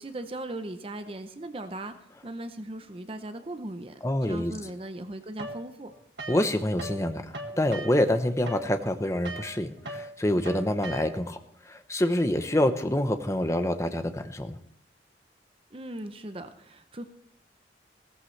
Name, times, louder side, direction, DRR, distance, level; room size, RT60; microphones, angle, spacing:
voice 1, 0.0-2.0 2.2-5.9 15.7-17.1, right 1 dB, 30° right, 9 dB, 0.7 m, -38 dB
voice 2, 4.0-4.5 6.3-7.2 7.6-11.4 11.7-14.6, left 1 dB, 15° left, 8 dB, 0.8 m, -26 dB
sound 1, 5.4-7.0 7.3-11.4, right 2 dB, 75° right, 1.6 m, -40 dB
16.5 x 14.0 x 3.2 m, 0.67 s
head